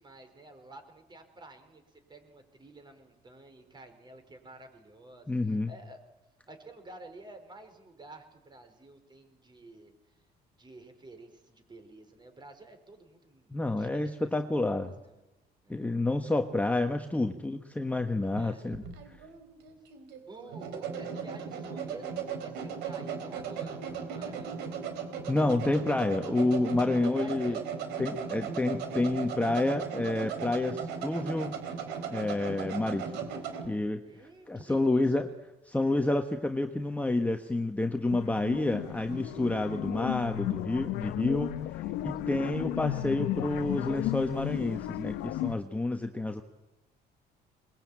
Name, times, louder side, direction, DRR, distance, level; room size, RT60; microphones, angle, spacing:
voice 1, 0.0-6.0 6.5-9.9 10.6-15.3 15.6-15.9 18.4-18.8 20.3-24.7 27.0-27.6 34.0-35.4 41.6-42.5, right 2 dB, 25° right, 7 dB, 4.9 m, -51 dB
voice 2, 5.3-5.7 13.5-14.9 15.7-18.8 25.3-27.6 28.0-31.5 32.1-33.0 33.6-34.0 34.5-35.3 35.7-41.5 42.0-46.4, left 2 dB, 10° left, 5 dB, 1.3 m, -29 dB
sound 1, 18.3-33.7, right 6 dB, 90° right, 3.9 m, -37 dB
sound 2, 38.1-45.6, left 15 dB, 90° left, 1.0 m, -34 dB
22.0 x 21.0 x 8.8 m, 1.0 s
cardioid pair, 110°, 17 cm